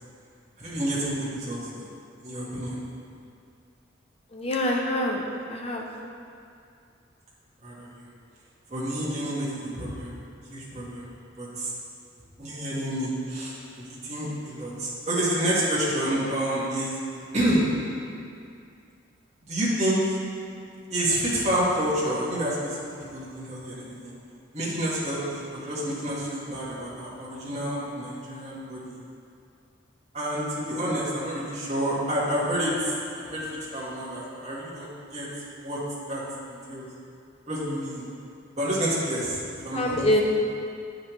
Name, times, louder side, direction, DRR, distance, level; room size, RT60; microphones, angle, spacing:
voice 1, 0.6-1.8 2.2-2.8 7.6-8.1 8.7-10.1 10.5-11.1 11.4-11.7 12.4-16.9 17.3-17.6 19.5-20.2 20.9-24.1 24.5-29.0 30.1-33.5 33.7-35.3 35.6-35.8 36.1-36.2 36.5-36.9 37.5-38.0 38.6-40.2, right 1 dB, 35° right, -7 dB, 1.4 m, -29 dB
voice 2, 4.3-5.9 39.7-40.2, left 1 dB, 30° left, 0 dB, 0.6 m, -25 dB
8.5 x 5.2 x 3.1 m, 2.4 s
head